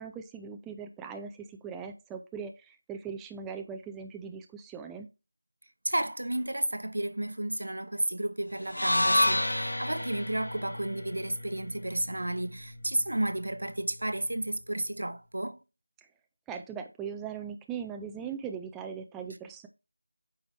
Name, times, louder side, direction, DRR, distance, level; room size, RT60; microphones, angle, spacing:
voice 1, 0.0-5.1 16.0-16.1 16.5-19.7, right 6 dB, 5° right, 0.3 m, -40 dB
voice 2, 5.8-15.6, right 1 dB, 80° right, 0.8 m, -32 dB
sound 1, 8.7-12.9, left 1 dB, 85° left, 0.7 m, -30 dB
8.6 x 4.8 x 3.2 m
figure-of-eight pair, 170°, 0 cm